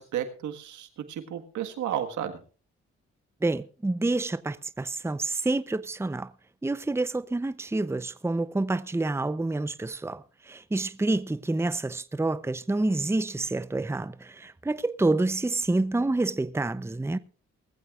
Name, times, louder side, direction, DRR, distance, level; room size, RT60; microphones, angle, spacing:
voice 1, 0.0-2.4, right 10 dB, 85° right, 1.6 m, -33 dB
voice 2, 3.4-6.3 6.6-17.2, right 2 dB, 10° right, 0.7 m, -28 dB
20.5 x 14.5 x 2.5 m
supercardioid pair, 50°, 29 cm